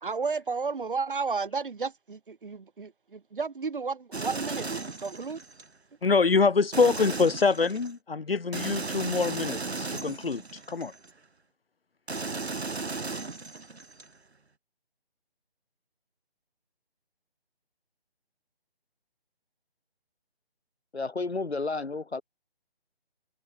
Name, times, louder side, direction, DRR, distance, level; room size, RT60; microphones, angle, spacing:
voice 1, 0.0-5.4, right 4 dB, 55° right, 2.2 m, -33 dB
sound 1, 4.1-5.7 6.7-7.9 8.5-11.1 12.1-14.1, right 3 dB, 85° right, 6.9 m, -36 dB
voice 2, 6.0-10.4 10.7-10.9, left 4 dB, 65° left, 2.6 m, -25 dB
voice 3, 20.9-22.2, left 3 dB, 85° left, 5.5 m, -31 dB
hypercardioid pair, 175°, 32 cm